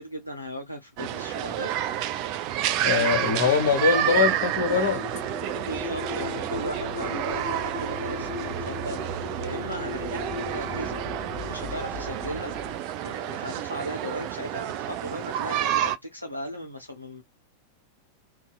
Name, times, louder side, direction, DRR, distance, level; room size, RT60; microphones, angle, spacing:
voice 1, 0.0-1.7 5.5-11.0 11.5-12.5 13.0-17.2, equal, 85° left, 0.5 m, -37 dB
sound 1, 1.0-16.0, right 11 dB, 40° right, 0.3 m, -30 dB
voice 2, 2.8-5.0, left 6 dB, 60° left, 0.9 m, -22 dB
sound 2, 4.5-12.8, left 3 dB, 25° left, 0.8 m, -37 dB
2.7 x 2.3 x 2.2 m
figure-of-eight pair, 90°, 0 cm